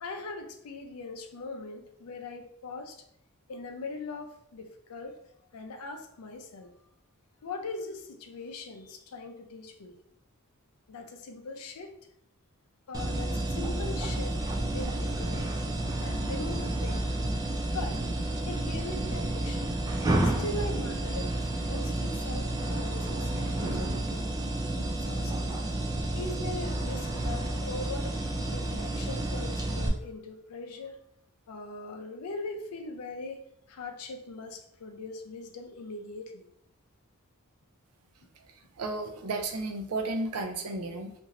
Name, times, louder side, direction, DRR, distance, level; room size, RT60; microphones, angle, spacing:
voice 1, 0.0-3.0 3.5-5.2 5.5-6.7 7.4-10.0 10.9-12.0 12.9-14.4 14.6-15.6 16.0-17.1 17.7-18.0 18.4-19.7 20.2-24.3 24.9-25.6 26.1-28.1 28.5-31.0 31.5-33.4 33.7-36.4, left 3 dB, 80° left, 4 dB, 0.5 m, -40 dB
sound 1, 12.9-29.9, right 1 dB, 15° right, 0.3 m, -30 dB
voice 2, 38.8-41.1, right 2 dB, 90° right, 6 dB, 0.4 m, -33 dB
2.6 x 2.4 x 3.0 m, 0.72 s
head